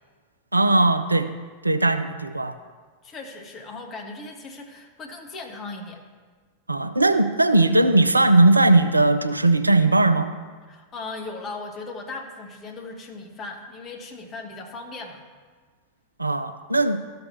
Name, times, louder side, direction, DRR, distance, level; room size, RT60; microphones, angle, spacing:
voice 1, 0.5-1.3 1.6-2.5 6.7-10.3 16.2-17.0, right 2 dB, 85° right, 11 dB, 0.4 m, -19 dB
voice 2, 3.0-6.0 10.7-15.2, left 3 dB, 30° left, 1 dB, 1.4 m, -37 dB
13.0 x 6.5 x 2.8 m, 1.5 s
figure-of-eight pair, 90°, 0 cm